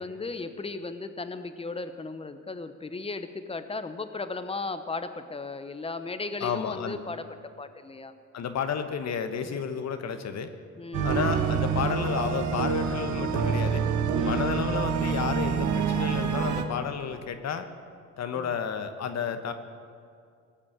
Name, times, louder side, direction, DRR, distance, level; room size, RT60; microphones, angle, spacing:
voice 1, 0.0-7.2 7.6-8.1 9.4-9.6 10.8-11.4 14.1-14.5 18.3-18.6, left 3 dB, 20° left, 10 dB, 1.0 m, -36 dB
voice 2, 6.4-7.0 8.3-10.5 11.0-13.8 14.2-17.6 18.2-19.5, left 7 dB, 60° left, 8 dB, 1.2 m, -31 dB
sound 1, 10.9-16.6, right 6 dB, 75° right, 1.4 m, -27 dB
18.5 x 7.4 x 8.8 m, 2.3 s
cardioid pair, 90°, 30 cm